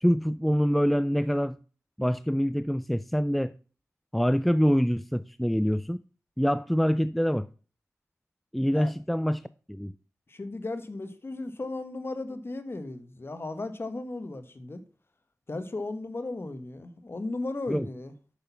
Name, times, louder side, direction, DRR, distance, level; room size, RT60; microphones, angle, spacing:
voice 1, 0.0-1.6 2.0-3.5 4.1-6.0 6.4-7.5 8.5-9.4 9.7-9.9 17.7-17.9, equal, ahead, 0.4 m, -25 dB
voice 2, 10.3-14.8 15.5-18.1, left 2 dB, 45° left, 1.5 m, -35 dB
8.9 x 6.6 x 5.7 m
cardioid pair, 50°, 6 cm